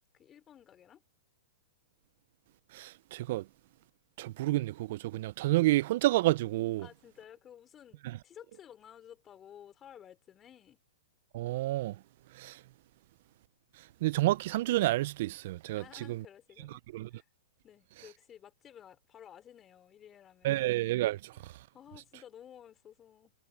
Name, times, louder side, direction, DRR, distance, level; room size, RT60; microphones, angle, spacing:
voice 1, 0.1-1.0 6.8-10.8 15.8-16.8 17.1-17.3 17.6-20.6 21.3-21.5 21.7-23.3, left 9 dB, 25° left, 5.1 m, -54 dB
voice 2, 2.7-3.4 4.2-6.9 11.3-11.9 12.4-12.5 14.0-15.8 16.1-16.2 16.9-17.1 20.4-21.3, right 17 dB, 55° right, 0.6 m, -29 dB
hypercardioid pair, 130°, 0 cm